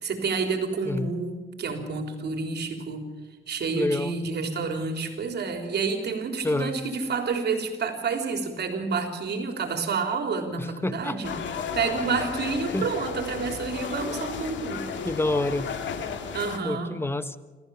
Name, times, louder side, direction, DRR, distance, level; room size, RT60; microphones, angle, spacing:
voice 1, 0.0-3.1 3.5-11.4 11.7-14.8 16.3-17.0, right 4 dB, 55° right, 4 dB, 3.7 m, -29 dB
voice 2, 3.7-4.1 6.4-6.8 10.6-11.2 12.7-12.9 15.0-15.7 16.6-17.4, left 2 dB, 10° left, 13 dB, 1.1 m, -27 dB
sound 1, 11.2-16.6, left 6 dB, 65° left, 2.3 m, -33 dB
27.0 x 14.5 x 7.2 m, 1.4 s
cardioid pair, 90°, 20 cm